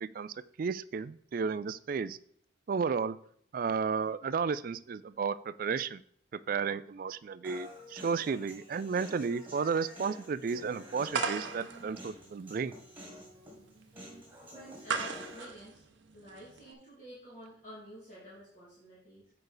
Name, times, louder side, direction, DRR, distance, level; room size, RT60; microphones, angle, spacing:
voice 1, 0.0-2.2 2.7-3.2 3.5-6.0 6.3-12.7, right 5 dB, 45° right, 16 dB, 0.3 m, -33 dB
Human voice, 7.4-15.5, equal, 10° right, 2.1 m, -49 dB
sound 1, 11.1-16.7, right 5 dB, 70° right, 0.7 m, -38 dB
voice 2, 14.5-15.9 16.1-19.3, equal, 40° left, -7 dB, 2.3 m, -50 dB
8.0 x 5.2 x 3.9 m, 0.64 s
head